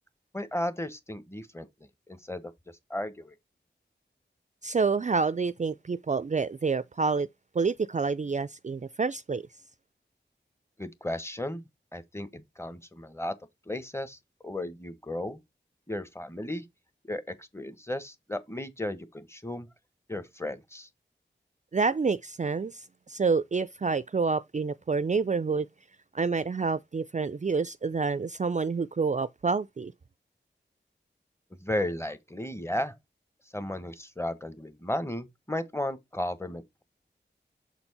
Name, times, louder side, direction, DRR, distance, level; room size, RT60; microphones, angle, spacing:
voice 1, 0.3-1.7 2.1-2.5 2.9-3.3 10.8-13.3 13.7-15.4 15.9-16.6 17.1-19.7 20.1-20.9 31.6-33.0 33.5-36.8, left 1 dB, 15° left, 1.2 m, -34 dB
voice 2, 4.6-7.3 7.5-9.4 21.7-25.7 26.1-29.9, right 4 dB, 40° right, 0.4 m, -28 dB
7.2 x 4.4 x 4.1 m
wide cardioid pair, 60°, 19 cm